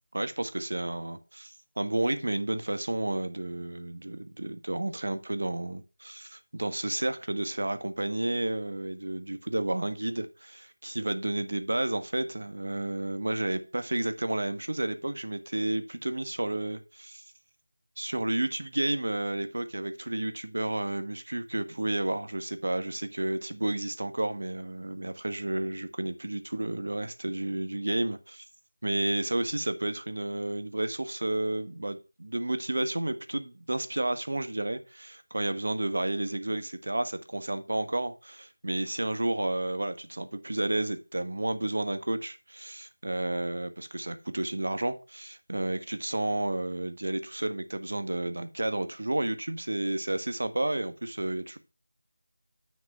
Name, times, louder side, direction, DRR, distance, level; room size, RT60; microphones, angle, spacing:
voice 1, 0.1-17.2 18.0-28.4 28.8-51.6, right 1 dB, 65° right, 1.4 m, -31 dB
9.7 x 4.0 x 5.5 m
figure-of-eight pair, 175°, 0 cm